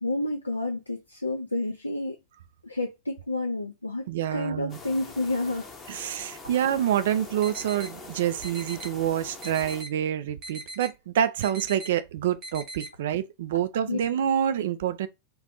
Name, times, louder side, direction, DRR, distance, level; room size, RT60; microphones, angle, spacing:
voice 1, 0.0-2.2 2.6-4.1 4.3-6.1 13.9-14.0, left 2 dB, 85° left, 0.4 m, -30 dB
voice 2, 4.1-4.8 5.9-15.1, right 10 dB, 55° right, 0.3 m, -27 dB
sound 1, 4.7-9.8, left 3 dB, 20° left, 0.7 m, -44 dB
sound 2, 7.4-7.9 8.4-8.9 9.4-9.9 10.4-10.9 11.4-11.9 12.4-12.9, right 2 dB, 35° right, 0.8 m, -39 dB
2.5 x 2.3 x 3.8 m
figure-of-eight pair, 90°, 0 cm